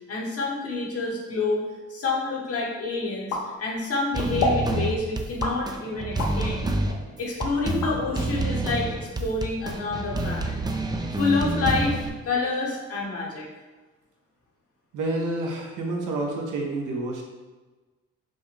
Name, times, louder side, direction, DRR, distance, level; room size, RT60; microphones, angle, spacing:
voice 1, 0.1-1.6 1.9-6.7 7.2-10.6 11.2-13.5, left 3 dB, 50° left, -3 dB, 1.2 m, -28 dB
sound 1, 3.3-4.0 4.4-4.7 5.4-6.4 6.9-8.0, left 2 dB, 75° left, 0.9 m, -28 dB
sound 2, 4.1-12.1, right 2 dB, 15° right, 0.4 m, -28 dB
voice 2, 14.9-17.2, right 2 dB, 80° right, 0 dB, 0.9 m, -29 dB
5.5 x 2.1 x 3.3 m, 1.2 s
cardioid pair, 90°, 30 cm